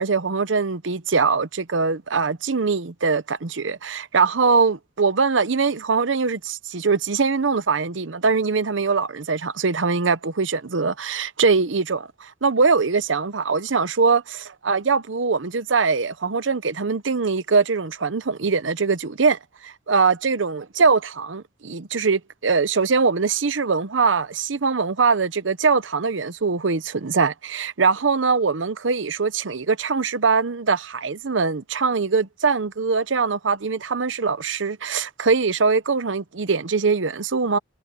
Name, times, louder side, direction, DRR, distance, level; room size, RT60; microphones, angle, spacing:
voice 1, 0.0-14.2 14.6-37.6, right 4 dB, 80° right, 0.8 m, -22 dB
head